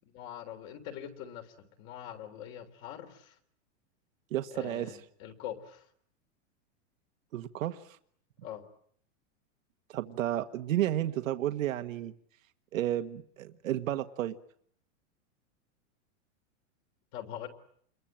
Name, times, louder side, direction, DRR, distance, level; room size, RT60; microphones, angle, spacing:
voice 1, 0.0-3.3 4.5-5.9 8.4-8.7 17.1-17.5, left 10 dB, 40° left, 6 dB, 3.7 m, -43 dB
voice 2, 4.3-5.0 7.3-8.0 9.9-12.1 12.7-14.4, right 12 dB, 90° right, 8 dB, 1.6 m, -32 dB
29.0 x 22.5 x 9.0 m, 0.65 s
supercardioid pair, 160°, 39 cm